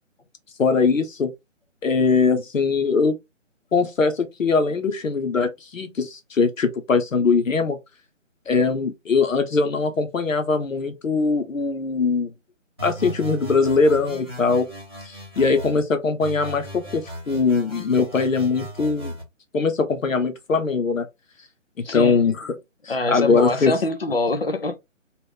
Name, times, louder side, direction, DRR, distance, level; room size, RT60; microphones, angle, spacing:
voice 1, 0.6-1.3 1.8-3.2 3.7-7.8 8.5-12.3 12.8-14.7 15.1-19.1 19.5-21.1 21.8-22.5 22.8-23.7, left 4 dB, 80° left, 0.9 m, -21 dB
sound 1, 12.8-15.8 16.2-19.2, equal, 20° right, 0.8 m, -36 dB
voice 2, 21.8-22.2 22.9-24.8, left 2 dB, 50° left, 0.5 m, -24 dB
2.9 x 2.5 x 3.4 m
hypercardioid pair, 175°, 39 cm